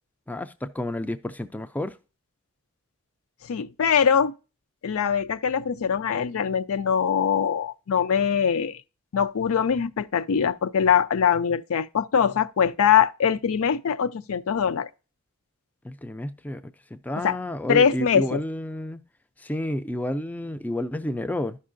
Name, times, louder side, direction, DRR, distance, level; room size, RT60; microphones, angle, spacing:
voice 1, 0.3-2.0 15.8-16.6 16.9-19.0 19.4-21.6, left 1 dB, 5° left, 0.3 m, -30 dB
voice 2, 3.5-4.3 4.8-8.8 9.1-14.9 17.2-17.4 17.7-18.4, left 7 dB, 75° left, 0.4 m, -22 dB
13.0 x 5.4 x 2.5 m
head